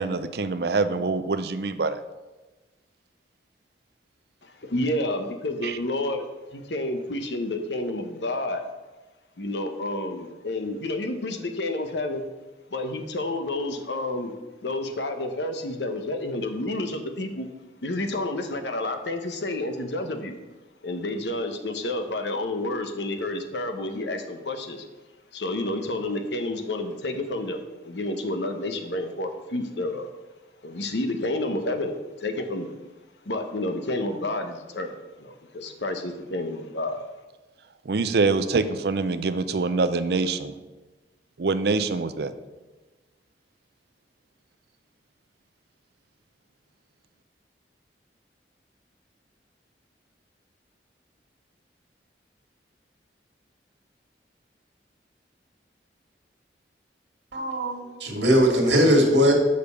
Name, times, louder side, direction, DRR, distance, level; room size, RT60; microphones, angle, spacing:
voice 1, 0.0-2.0 5.6-5.8 37.9-40.6 41.4-42.3, right 3 dB, 60° right, 12 dB, 0.5 m, -25 dB
voice 2, 4.4-6.3 6.5-8.7 9.4-12.2 12.7-14.3 14.6-17.5 17.8-20.3 20.8-24.8 25.3-30.1 30.6-32.7 33.3-34.9 35.2-37.0, left 2 dB, 75° left, 6 dB, 0.9 m, -30 dB
voice 3, 57.3-59.3, equal, 85° right, 1 dB, 1.9 m, -20 dB
6.7 x 5.2 x 6.7 m, 1.2 s
head